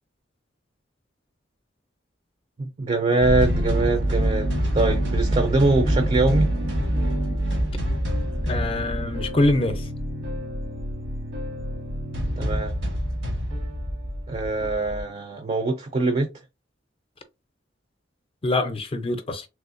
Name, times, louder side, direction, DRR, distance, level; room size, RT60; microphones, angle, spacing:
voice 1, 2.6-4.5 4.7-6.5 12.4-12.7 14.3-16.3, right 3 dB, 35° right, 0.5 m, -23 dB
sound 1, 3.2-15.0, equal, 75° right, 1.1 m, -26 dB
voice 2, 8.5-9.9 18.4-19.5, left 2 dB, 30° left, 0.5 m, -24 dB
3.4 x 3.0 x 2.5 m
head